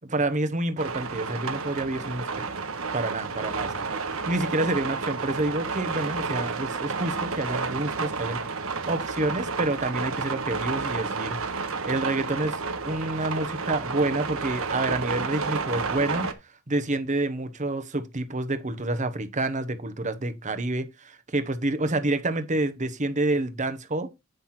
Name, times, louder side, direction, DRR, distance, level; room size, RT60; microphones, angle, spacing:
voice 1, 0.1-2.5 2.9-8.4 8.6-11.4 11.8-16.3 16.7-24.1, right 2 dB, 35° right, 1.1 m, -28 dB
sound 1, 0.8-16.3, right 4 dB, 85° right, 1.3 m, -31 dB
9.4 x 5.8 x 4.3 m
head